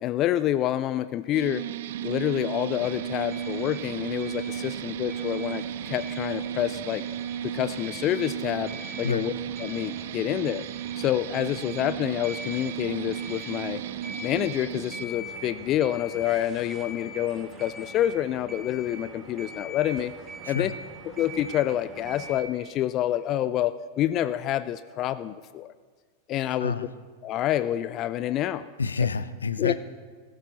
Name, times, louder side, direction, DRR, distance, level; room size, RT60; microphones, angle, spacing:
voice 1, 0.0-1.6 2.0-7.0 7.4-8.7 9.0-9.3 9.6-10.7 11.0-13.8 14.2-20.1 20.5-20.7 21.2-25.7 26.3-26.7 27.2-28.6 29.6-29.7, left 12 dB, 35° left, 14 dB, 0.4 m, -27 dB
sound 1, 1.3-15.0, right 10 dB, 55° right, 0.4 m, -34 dB
sound 2, 2.8-22.4, right 1 dB, 25° right, 2.8 m, -43 dB
voice 2, 28.8-29.7, left 5 dB, 75° left, 13 dB, 0.6 m, -28 dB
19.0 x 13.0 x 4.1 m, 1.5 s
figure-of-eight pair, 90°, 0 cm